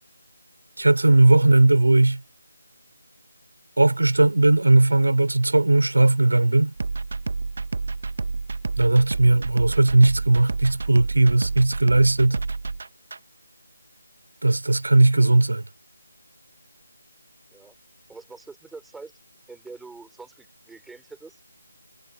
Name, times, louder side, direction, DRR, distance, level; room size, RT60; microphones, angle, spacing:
voice 1, 0.8-2.2 3.8-6.7 8.8-12.4 14.4-15.6, right 2 dB, 65° right, 3.6 m, -18 dB
sound 1, 6.8-13.2, right 4 dB, 50° right, 1.1 m, -29 dB
voice 2, 18.1-19.1 19.5-21.4, right 4 dB, ahead, 4.8 m, -44 dB
figure-of-eight pair, 160°, 0 cm